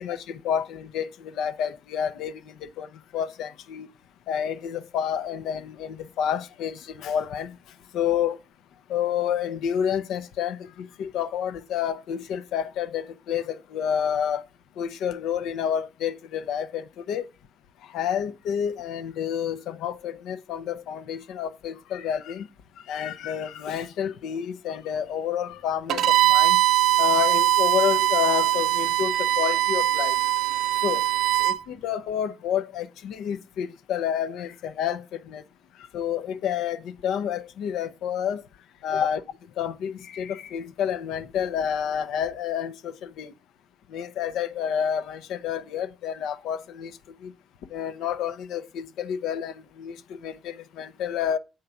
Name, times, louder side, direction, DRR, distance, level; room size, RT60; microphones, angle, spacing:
voice 1, 0.0-2.9 3.1-3.9 4.3-7.5 7.9-8.4 8.9-14.4 14.8-17.3 17.9-22.5 22.9-26.6 27.0-30.1 30.8-31.0 31.4-35.4 35.9-38.4 38.8-39.2 39.6-43.3 43.9-46.9 47.2-47.3 47.7-51.4, left 9 dB, 85° left, 0.7 m, -29 dB
Bowed string instrument, 25.9-31.6, right 14 dB, 80° right, 0.5 m, -21 dB
8.0 x 3.7 x 5.8 m
cardioid pair, 90°, 0 cm